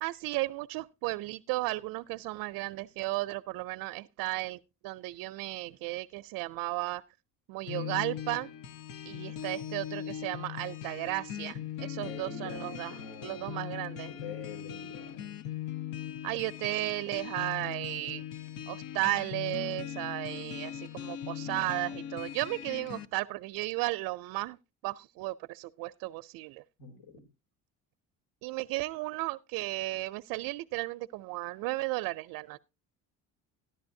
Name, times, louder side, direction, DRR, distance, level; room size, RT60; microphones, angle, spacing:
voice 1, 0.0-7.0 7.5-8.5 9.0-12.9 13.2-14.1 16.2-18.2 18.7-24.6 24.8-26.6 28.4-32.6, right 20 dB, 85° right, 0.5 m, -34 dB
sound 1, 7.7-23.1, left 10 dB, 85° left, 0.9 m, -40 dB
voice 2, 11.9-13.6 14.0-15.3 26.8-27.3, left 5 dB, 60° left, 2.6 m, -45 dB
13.5 x 11.0 x 2.6 m
cardioid pair, 170°, 34 cm